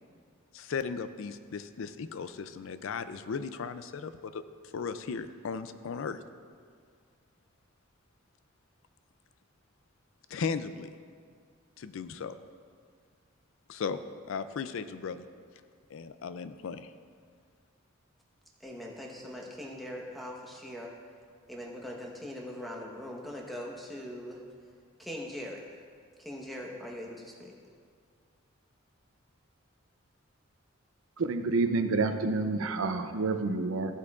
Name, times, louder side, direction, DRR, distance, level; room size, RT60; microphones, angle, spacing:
voice 1, 0.5-4.4 4.7-6.2 10.3-10.9 11.8-12.3 13.7-14.0 14.3-15.3 15.9-16.9, left 5 dB, 70° left, 12 dB, 0.4 m, -36 dB
voice 2, 18.6-20.9 21.5-24.4 25.0-25.6 26.2-27.6, left 1 dB, ahead, -2 dB, 1.1 m, -41 dB
voice 3, 31.2-33.9, right 3 dB, 80° right, 8 dB, 0.6 m, -28 dB
14.5 x 8.3 x 2.4 m, 2.1 s
head